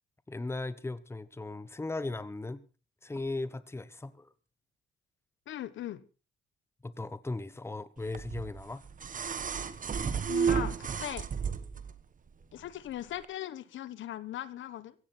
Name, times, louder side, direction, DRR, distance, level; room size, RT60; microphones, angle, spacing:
voice 1, 0.3-2.6 3.0-4.3 6.8-8.8, left 2 dB, 10° left, 1.1 m, -37 dB
voice 2, 5.5-6.0 10.3-11.3 12.5-14.9, left 12 dB, 75° left, 1.2 m, -39 dB
sound 1, 8.1-11.9 13.2-13.3, right 6 dB, 40° right, 1.4 m, -32 dB
16.0 x 16.0 x 4.3 m
cardioid pair, 90°, 20 cm